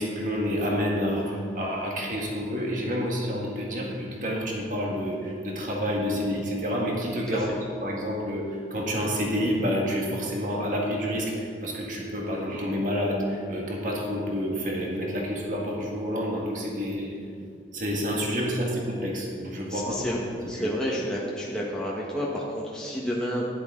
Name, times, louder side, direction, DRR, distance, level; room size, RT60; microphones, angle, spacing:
voice 1, 0.0-7.5 7.8-17.1 17.7-20.1 20.6-20.7, equal, 45° right, -2 dB, 1.7 m, -29 dB
voice 2, 19.7-20.2 20.5-23.5, equal, 5° left, -5 dB, 1.3 m, -30 dB
13.0 x 11.0 x 3.8 m, 2.4 s
head